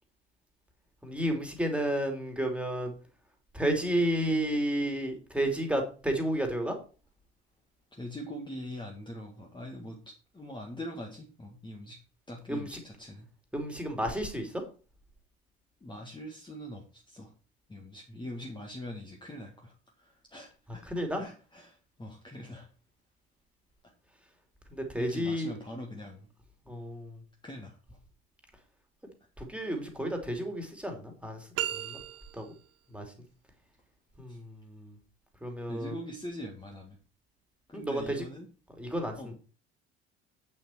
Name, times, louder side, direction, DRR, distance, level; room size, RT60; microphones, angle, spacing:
voice 1, 1.0-2.9 3.5-6.7 12.5-12.8 13.5-14.5 20.8-21.2 24.7-25.5 26.7-27.2 29.4-31.4 31.7-32.0 32.3-32.4 32.9-33.0 34.2-34.9 35.4-35.9 37.7-38.2 38.8-39.3, right 1 dB, 5° right, 3 dB, 3.0 m, -31 dB
voice 2, 7.9-12.0 12.3-13.3 15.8-17.3 17.7-19.7 20.3-22.7 25.0-26.3 27.4-27.8 34.3-34.4 35.7-37.0 37.7-38.5 39.1-39.3, left 1 dB, 15° left, 0 dB, 1.9 m, -43 dB
sound 1, 31.5-32.7, right 12 dB, 45° right, 0.9 m, -35 dB
8.6 x 7.5 x 4.5 m, 0.36 s
figure-of-eight pair, 60°, 33 cm